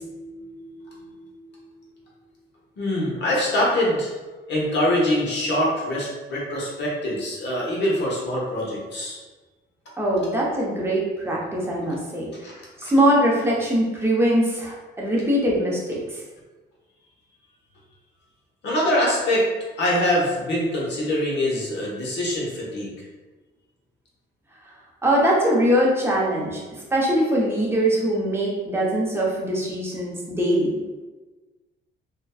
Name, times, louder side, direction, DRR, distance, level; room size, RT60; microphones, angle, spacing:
voice 1, 0.0-1.7 2.8-4.1 4.5-9.2 12.4-12.5 12.8-12.9 18.6-19.5 19.8-23.0, left 1 dB, 60° left, -4 dB, 0.9 m, -24 dB
voice 2, 10.0-12.3 12.8-16.2 25.0-26.6 26.9-30.7, right 1 dB, 10° right, -4 dB, 0.7 m, -22 dB
2.5 x 2.1 x 2.3 m, 1.2 s
cardioid pair, 90°, 20 cm